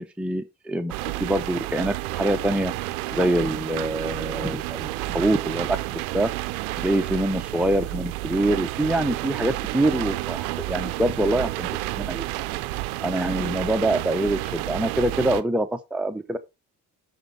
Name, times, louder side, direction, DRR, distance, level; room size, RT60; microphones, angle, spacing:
voice 1, 0.0-6.3 6.8-11.7 12.0-12.2 13.0-16.4, right 1 dB, 5° right, 0.8 m, -25 dB
sound 1, 0.9-15.4, right 18 dB, 90° right, 0.6 m, -30 dB
12.0 x 4.5 x 4.0 m
hypercardioid pair, 45°, 43 cm